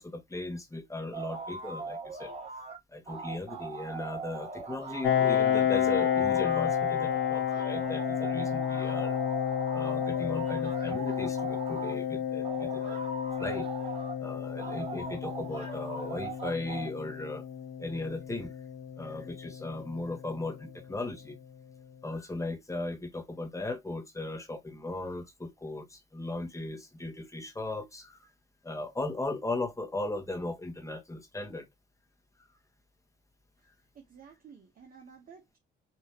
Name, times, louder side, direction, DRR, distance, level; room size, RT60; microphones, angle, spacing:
voice 1, 0.0-2.3 2.9-9.2 9.7-13.1 13.4-13.7 14.2-17.4 17.8-18.5 19.0-21.4 22.0-28.3 28.6-31.7, left 2 dB, 15° left, 1.3 m, -37 dB
sound 1, 1.1-2.8 3.1-12.0 12.4-14.2 14.6-16.9, right 4 dB, 30° right, 3.5 m, -40 dB
Piano, 5.0-20.4, left 9 dB, 65° left, 0.8 m, -31 dB
voice 2, 33.6-35.6, right 6 dB, 45° right, 1.1 m, -53 dB
4.9 x 2.9 x 2.9 m
cardioid pair, 90°, 20 cm